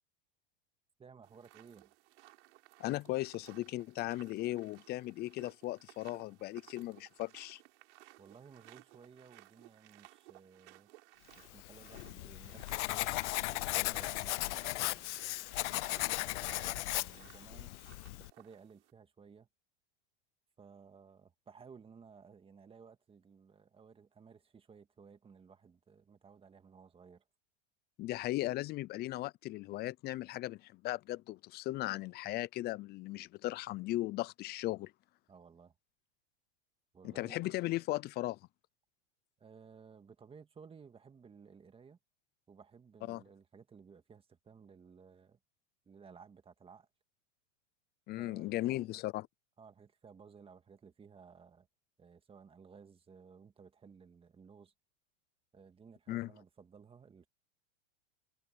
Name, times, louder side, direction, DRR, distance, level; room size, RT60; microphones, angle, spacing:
voice 1, 1.0-1.9 8.2-10.9 11.4-13.2 13.5-15.2 16.0-17.7 18.3-19.5 20.6-27.2 35.3-35.7 36.9-37.5 39.4-42.0 42.5-45.4 45.9-46.9 48.2-48.9 49.6-51.7 52.0-54.7 55.5-57.3, right 6 dB, 15° right, 2.0 m, -57 dB
sound 1, 1.2-18.9, right 20 dB, 65° right, 5.5 m, -60 dB
voice 2, 2.8-7.6 28.0-34.9 37.0-38.4 43.1-43.2 48.1-49.3 56.1-56.3, left 17 dB, 25° left, 0.5 m, -37 dB
Writing, 11.6-18.3, left 19 dB, 70° left, 0.6 m, -37 dB
supercardioid pair, 135°, 37 cm